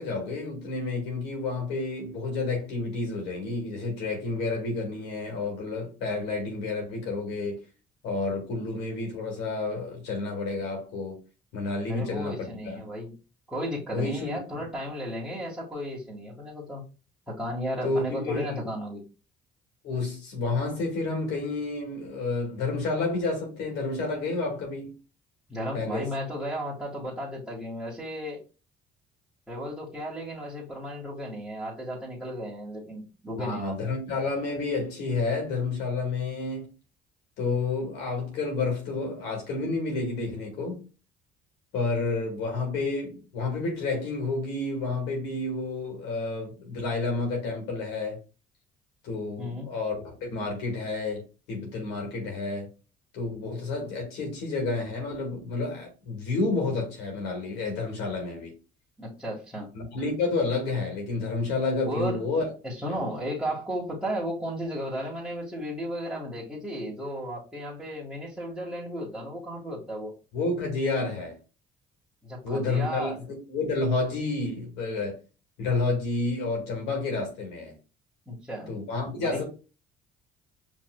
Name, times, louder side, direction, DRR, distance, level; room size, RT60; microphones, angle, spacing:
voice 1, 0.0-7.6 8.0-11.2 11.5-12.8 13.9-14.4 17.8-18.6 19.8-24.9 25.7-26.1 33.4-36.7 37.4-40.8 41.7-48.2 49.0-51.2 51.5-52.7 53.1-58.5 59.7-62.4 62.9-63.0 70.3-71.4 72.4-75.2 75.6-77.7 78.7-79.4, left 3 dB, 85° left, 2.0 m, -30 dB
voice 2, 11.9-13.1 13.5-16.8 17.3-19.0 25.5-28.4 29.5-33.9 49.4-49.7 59.0-59.7 61.8-62.2 62.6-70.1 72.2-73.2 78.3-78.7 79.2-79.4, equal, ahead, 1.7 m, -34 dB
5.1 x 3.4 x 2.3 m
cardioid pair, 95°, 17 cm